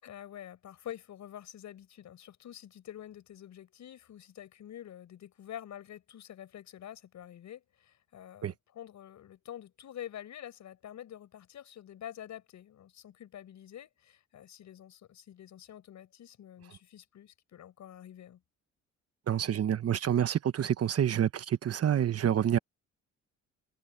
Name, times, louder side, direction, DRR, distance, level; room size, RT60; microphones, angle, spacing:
voice 1, 0.0-18.4, left 11 dB, 70° left, 6.0 m, -47 dB
voice 2, 19.3-22.6, right 9 dB, 55° right, 1.2 m, -27 dB
cardioid pair, 90°, 30 cm